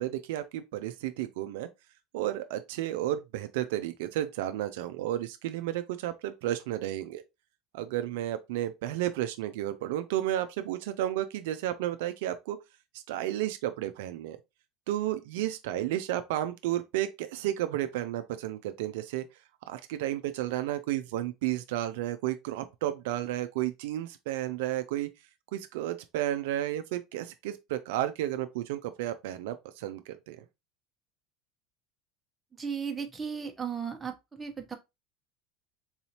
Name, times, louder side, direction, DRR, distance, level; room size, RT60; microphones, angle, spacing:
voice 1, 0.0-1.7 2.1-7.2 7.7-12.6 13.1-14.4 14.9-19.2 19.7-25.1 25.5-30.4, right 13 dB, 80° right, 0.4 m, -32 dB
voice 2, 32.6-34.8, right 6 dB, 20° right, 0.9 m, -35 dB
3.9 x 2.7 x 2.9 m
supercardioid pair, 100°, 0 cm